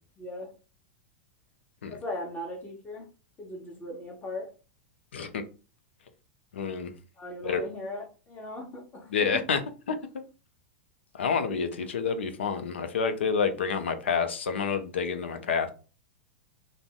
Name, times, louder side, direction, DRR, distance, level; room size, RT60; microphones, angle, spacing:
voice 1, 0.2-0.5 1.9-3.1 3.4-4.5 7.2-9.4, left 1 dB, 25° left, 1 dB, 1.2 m, -38 dB
voice 2, 5.1-5.4 6.5-6.9 7.4-7.6 9.1-9.6 9.9-10.0 11.1-15.7, left 6 dB, 85° left, 8 dB, 0.5 m, -28 dB
2.5 x 2.1 x 3.5 m, 0.35 s
hypercardioid pair, 110°, 6 cm